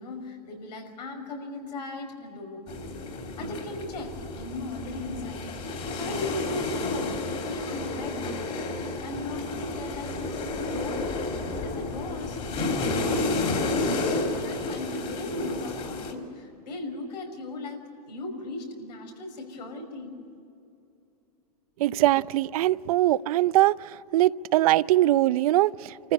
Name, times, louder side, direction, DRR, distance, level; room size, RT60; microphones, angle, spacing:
voice 1, 0.0-2.9 3.4-8.4 9.0-11.1 11.4-12.8 13.3-20.2, left 2 dB, 80° left, 3 dB, 5.7 m, -38 dB
sound 1, 2.7-16.1, left 2 dB, 30° left, 3.3 m, -31 dB
voice 2, 21.8-23.7 24.1-26.1, right 15 dB, 60° right, 18 dB, 0.5 m, -22 dB
28.0 x 14.5 x 9.6 m, 2.6 s
supercardioid pair, 145°, 21 cm